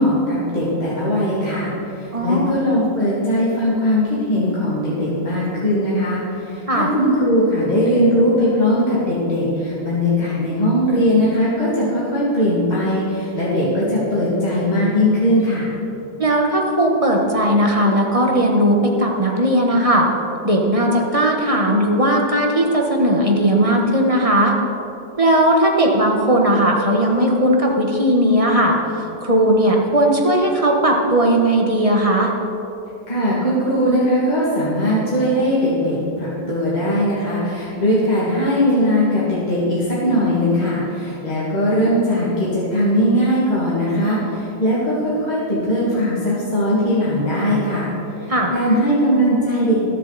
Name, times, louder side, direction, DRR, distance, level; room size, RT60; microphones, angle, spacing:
voice 1, 0.0-15.7 33.1-47.9 48.2-49.9, equal, 25° left, -8 dB, 2.3 m, -19 dB
voice 2, 2.1-2.6 6.7-6.9 16.2-20.1 20.4-24.5 25.2-32.3 48.3-48.5, right 1 dB, 20° right, 0 dB, 1.1 m, -17 dB
20.5 x 7.4 x 4.1 m, 3.0 s
omnidirectional pair, 1.9 m